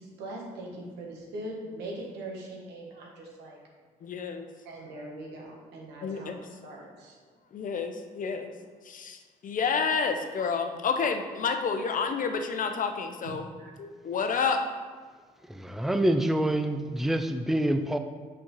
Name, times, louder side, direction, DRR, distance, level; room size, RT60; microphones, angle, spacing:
voice 1, 0.0-3.6 4.6-7.2 13.2-13.7, right 1 dB, 80° right, 1.6 m, -41 dB
voice 2, 4.0-4.5 6.0-6.4 7.5-8.5 8.8-13.4 13.8-14.6, left 5 dB, 50° left, 0.8 m, -29 dB
voice 3, 15.5-18.0, right 1 dB, ahead, 0.5 m, -26 dB
6.2 x 4.6 x 5.5 m
supercardioid pair, 60°, 17 cm